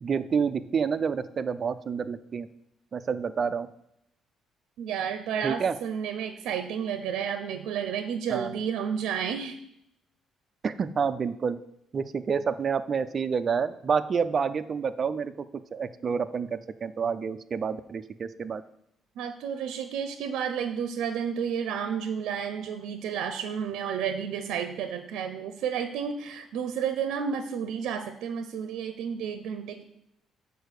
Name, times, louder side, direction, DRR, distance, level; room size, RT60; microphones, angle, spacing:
voice 1, 0.0-2.5 2.9-3.7 5.4-5.8 8.3-8.6 10.6-11.6 11.9-15.3 15.7-18.6, right 6 dB, 35° right, 10 dB, 0.4 m, -28 dB
voice 2, 4.8-9.6 19.2-29.8, right 7 dB, 85° right, 9 dB, 0.5 m, -31 dB
6.8 x 4.5 x 6.4 m, 0.77 s
cardioid pair, 155°, 0 cm